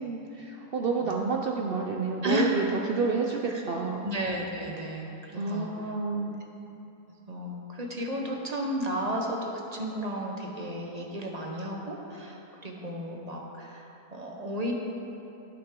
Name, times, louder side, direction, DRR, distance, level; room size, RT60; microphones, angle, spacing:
voice 1, 0.0-4.1 5.3-6.3, right 4 dB, 70° right, 1 dB, 0.5 m, -29 dB
voice 2, 2.2-2.5 3.5-3.6 4.0-5.7 7.3-14.7, equal, 30° right, 0 dB, 0.8 m, -33 dB
16.5 x 6.1 x 3.7 m, 3.0 s
omnidirectional pair, 1.7 m